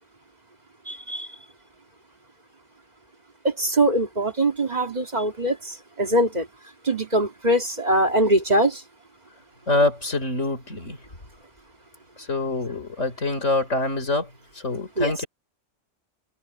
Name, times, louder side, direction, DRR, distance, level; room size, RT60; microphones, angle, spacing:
voice 1, 0.9-1.3 3.4-6.5 6.8-8.8 15.0-15.2, right 1 dB, 35° right, 2.3 m, -22 dB
voice 2, 9.7-11.0 12.3-14.3 14.6-15.3, left 2 dB, 85° left, 4.5 m, -25 dB
omnidirectional pair, 1.2 m